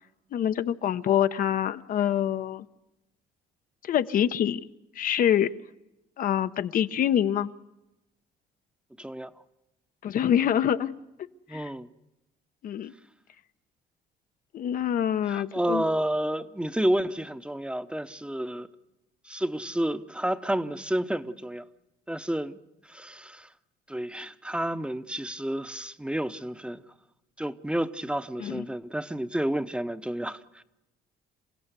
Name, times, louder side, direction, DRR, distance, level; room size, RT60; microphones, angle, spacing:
voice 1, 0.3-2.7 3.8-4.6 5.0-5.5 6.2-7.5 10.0-10.9 11.5-11.7 12.6-12.9 14.5-15.8 28.4-28.7, left 10 dB, 55° left, 11 dB, 0.8 m, -25 dB
voice 2, 9.0-9.3 11.5-11.9 15.3-18.7 19.2-21.6 22.1-22.6 22.9-23.5 23.9-26.8 27.4-30.6, right 1 dB, 5° right, 11 dB, 0.9 m, -30 dB
28.0 x 16.0 x 8.2 m, 0.94 s
cardioid pair, 110°, 17 cm